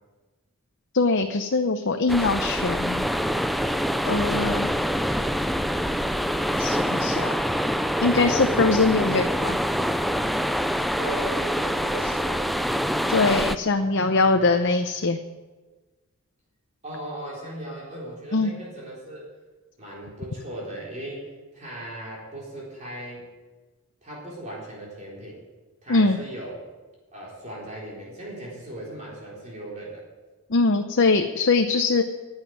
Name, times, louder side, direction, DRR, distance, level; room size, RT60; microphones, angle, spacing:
voice 1, 0.9-3.1 4.1-4.7 6.6-7.3 8.0-9.6 12.0-12.2 13.1-15.2 18.3-18.5 25.9-26.2 30.5-32.0, left 3 dB, 55° left, 6 dB, 0.7 m, -22 dB
sound 1, 2.1-13.6, equal, ahead, 0.3 m, -25 dB
voice 2, 11.0-12.5 13.8-14.7 16.8-19.3 19.8-23.2 24.0-25.4 25.8-26.6 27.1-30.0, right 1 dB, 35° right, -5 dB, 4.0 m, -38 dB
11.5 x 8.2 x 9.4 m, 1.3 s
head